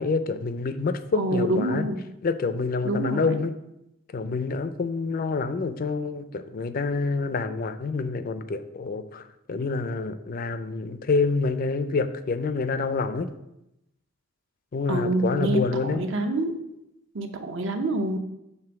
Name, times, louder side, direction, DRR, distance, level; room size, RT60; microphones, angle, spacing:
voice 1, 0.0-1.9 2.2-3.5 4.1-13.3 14.7-16.0, left 4 dB, 40° left, 11 dB, 0.4 m, -27 dB
voice 2, 1.2-2.0 2.8-3.4 14.9-16.6 17.1-18.2, right 2 dB, 60° right, 6 dB, 0.7 m, -26 dB
6.8 x 3.4 x 5.8 m, 0.86 s
head